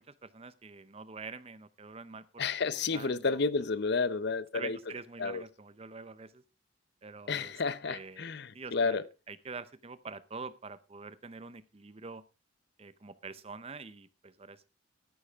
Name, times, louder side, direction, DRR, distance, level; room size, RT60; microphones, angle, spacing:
voice 1, 0.0-2.5 2.9-3.3 4.5-6.4 7.0-7.5 7.9-8.3 8.5-9.0 9.3-12.2 12.8-14.7, right 4 dB, 30° right, 0.6 m, -45 dB
voice 2, 2.4-4.8 5.2-5.4 7.3-9.1, left 4 dB, 55° left, 0.6 m, -31 dB
13.0 x 10.0 x 3.5 m
head